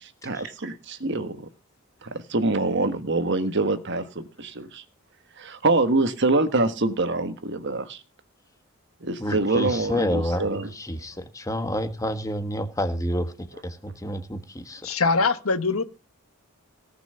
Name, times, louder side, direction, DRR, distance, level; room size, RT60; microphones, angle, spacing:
voice 1, 0.0-1.5 2.0-4.8 5.4-8.0 9.0-10.7, right 2 dB, 55° right, 1.4 m, -25 dB
voice 2, 9.2-14.9, equal, 15° left, 1.5 m, -29 dB
voice 3, 14.8-15.8, left 4 dB, 80° left, 1.4 m, -22 dB
18.0 x 6.1 x 6.8 m
head